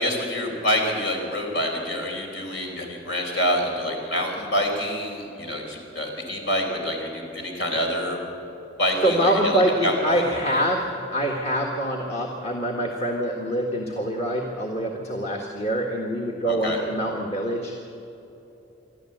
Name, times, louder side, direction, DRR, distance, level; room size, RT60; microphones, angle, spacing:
voice 1, 0.0-8.2 8.8-10.2 16.5-16.8, equal, 70° left, 2 dB, 4.5 m, -26 dB
voice 2, 9.0-17.8, right 1 dB, 35° left, 0 dB, 1.7 m, -25 dB
27.5 x 12.0 x 7.9 m, 3.0 s
head